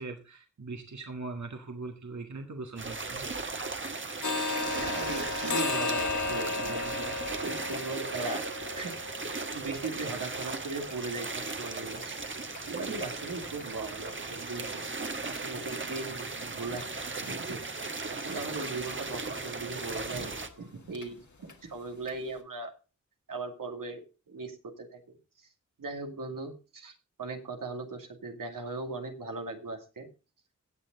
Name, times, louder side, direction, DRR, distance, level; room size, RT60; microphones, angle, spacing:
voice 1, 0.0-3.3, right 3 dB, 60° right, 4 dB, 1.8 m, -40 dB
sound 1, 2.8-20.5, right 3 dB, 40° right, 1.4 m, -37 dB
sound 2, 4.2-12.0 12.5-12.6 13.0-13.2 13.6-13.7 14.1-14.2 14.7-14.8 15.1-15.2 15.7-15.8 16.2-16.3 16.8-16.9 17.3-17.4 17.8-17.9 18.3-18.4 18.9-19.0 19.4-19.5 20.0-20.1 20.4-20.5 20.9-21.1 21.5-21.6 22.1-22.2, left 3 dB, 65° left, 2.0 m, -35 dB
voice 2, 4.7-8.4 8.8-9.2 9.5-12.2 12.7-14.8 15.3-17.6 18.1-22.7 23.3-24.0 24.3-25.0 25.4-25.5 25.8-30.1, right 3 dB, 85° right, 3 dB, 2.4 m, -39 dB
17.0 x 6.9 x 4.0 m, 0.33 s
cardioid pair, 60°, 32 cm